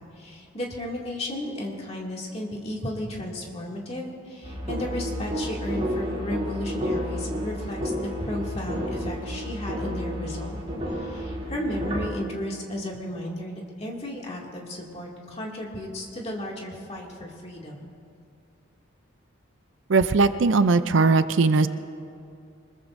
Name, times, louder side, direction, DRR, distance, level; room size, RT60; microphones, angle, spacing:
voice 1, 0.2-17.8, left 1 dB, 30° left, -2 dB, 2.3 m, -34 dB
sound 1, 4.4-12.1, equal, 30° right, 2.8 m, -31 dB
voice 2, 19.9-21.7, right 3 dB, 65° right, 11 dB, 0.5 m, -19 dB
25.0 x 21.5 x 2.6 m, 2.5 s
head